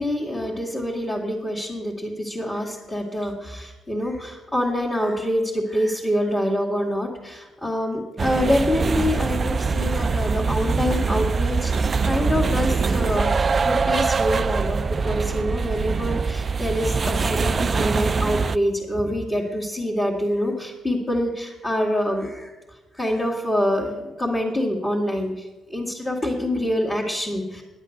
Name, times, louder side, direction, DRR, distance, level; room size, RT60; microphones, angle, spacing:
voice 1, 0.0-22.5 22.9-27.6, left 1 dB, 15° left, -4 dB, 2.0 m, -26 dB
sound 1, 8.2-18.6, right 4 dB, 35° right, 0.3 m, -23 dB
10.5 x 8.2 x 6.5 m, 1.2 s
cardioid pair, 90°, 0 cm